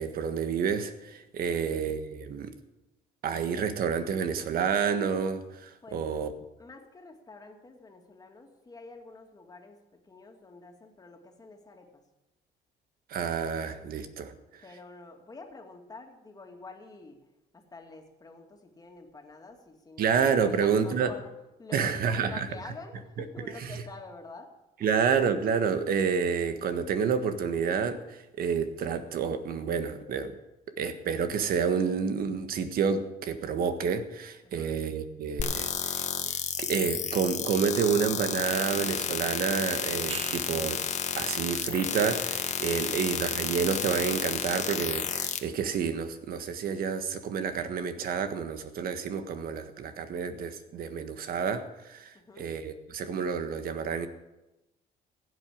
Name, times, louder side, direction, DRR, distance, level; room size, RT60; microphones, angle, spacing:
voice 1, 0.0-2.5 3.2-6.3 13.1-14.3 20.0-21.1 21.7-22.5 23.4-23.8 24.8-30.3 30.8-36.1 36.6-40.8 41.2-54.1, right 6 dB, 60° right, 1.6 m, -29 dB
voice 2, 6.6-12.0 14.6-17.2 17.5-21.3 21.6-24.5 24.8-25.0 34.4-34.8 52.1-52.5, left 3 dB, 20° left, 2.6 m, -48 dB
sound 1, 35.4-45.4, left 7 dB, 45° left, 1.6 m, -31 dB
sound 2, 40.1-40.9 45.6-45.7, right 6 dB, 35° right, 0.8 m, -41 dB
16.0 x 8.0 x 8.7 m
cardioid pair, 110°, 17 cm